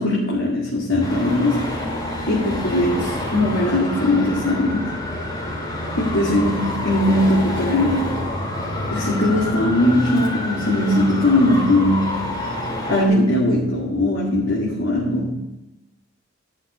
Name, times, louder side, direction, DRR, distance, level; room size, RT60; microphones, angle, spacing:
voice 1, 0.0-1.7 2.3-5.0 5.9-8.1 8.9-12.4 12.9-15.5, left 1 dB, 85° left, -5 dB, 2.4 m, -20 dB
Traffic noise roadway noise, 1.0-13.0, left 1 dB, 20° left, 2.3 m, -27 dB
11.5 x 6.0 x 7.3 m, 0.96 s
head